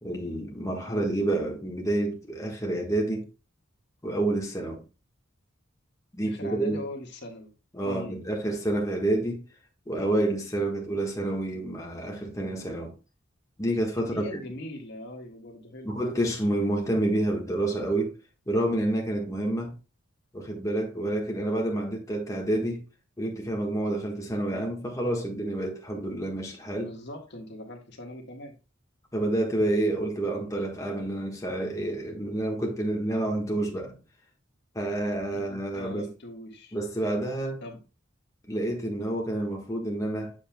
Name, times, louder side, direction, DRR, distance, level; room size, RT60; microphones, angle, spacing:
voice 1, 0.0-3.3 4.0-4.8 6.1-6.8 7.7-9.4 9.9-12.9 13.6-14.4 15.8-18.1 18.5-19.7 20.3-22.8 23.2-26.9 29.1-33.9 34.7-36.1 36.7-37.6 38.5-40.3, right 1 dB, 15° left, 1.3 m, -28 dB
voice 2, 6.2-7.5 7.8-8.2 13.9-16.0 26.8-28.6 35.3-36.8 37.6-37.8, left 1 dB, 60° left, 1.5 m, -41 dB
7.4 x 6.7 x 2.2 m
head